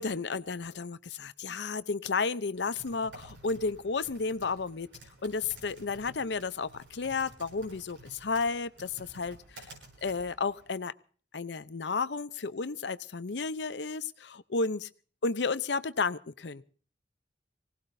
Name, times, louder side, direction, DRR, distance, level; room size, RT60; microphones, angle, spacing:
voice 1, 0.0-4.9 5.2-9.6 10.0-10.9 11.3-14.9 15.2-16.6, left 4 dB, 75° left, 15 dB, 0.7 m, -32 dB
Typing, 2.5-10.7, right 1 dB, 90° right, 6.7 m, -53 dB
24.0 x 18.0 x 2.7 m, 0.43 s
head